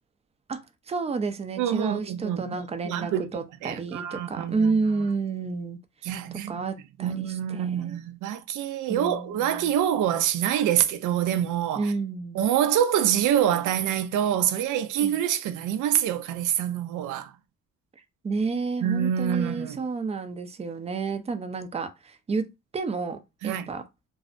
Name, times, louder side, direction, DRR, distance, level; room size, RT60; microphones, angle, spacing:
voice 1, 0.9-5.8 6.5-8.0 8.9-9.8 11.8-12.4 15.0-15.2 18.2-22.4 22.7-23.2 23.4-23.8, right 4 dB, 20° right, 0.4 m, -30 dB
voice 2, 1.6-2.5 2.8-4.7 6.0-6.6 7.0-11.9 12.3-17.3 18.8-19.8 23.4-23.6, right 10 dB, 80° right, 0.5 m, -26 dB
2.6 x 2.1 x 2.5 m
cardioid pair, 90°, 30 cm